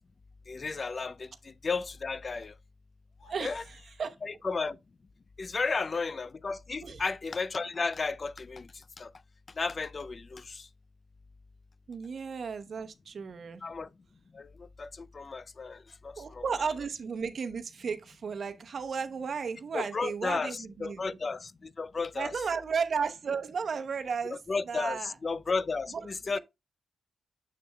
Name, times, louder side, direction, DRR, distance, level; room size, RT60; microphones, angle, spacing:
voice 1, 0.5-2.5 3.4-3.6 4.2-4.8 5.4-8.7 9.0-9.1 9.6-10.7 13.6-13.9 14.3-16.4 19.7-22.3 24.5-26.4, left 4 dB, 40° left, 0.3 m, -33 dB
sound 1, 3.0-4.2, left 2 dB, 80° left, 2.6 m, -61 dB
voice 2, 3.3-4.2 6.8-7.0 11.9-13.6 16.2-21.2 22.2-24.4 24.7-25.1 25.9-26.0 26.3-26.4, right 5 dB, 60° right, 0.8 m, -34 dB
6.8 x 6.5 x 2.3 m
cardioid pair, 95°, 0 cm